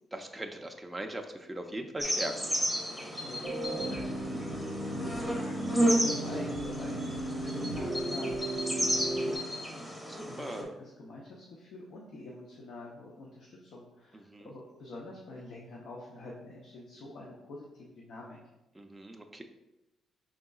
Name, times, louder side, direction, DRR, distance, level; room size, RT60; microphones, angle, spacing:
voice 1, 0.1-2.3 10.1-10.7 14.1-14.5 18.8-19.4, right 1 dB, 10° right, 2 dB, 0.4 m, -40 dB
sound 1, 2.0-10.6, equal, 10° left, 0.8 m, -33 dB
voice 2, 3.0-18.4, left 2 dB, 70° left, -3 dB, 0.7 m, -46 dB
sound 2, 3.4-9.4, right 1 dB, 70° right, 0.7 m, -35 dB
5.3 x 3.7 x 2.3 m, 0.99 s
cardioid pair, 90°, 0 cm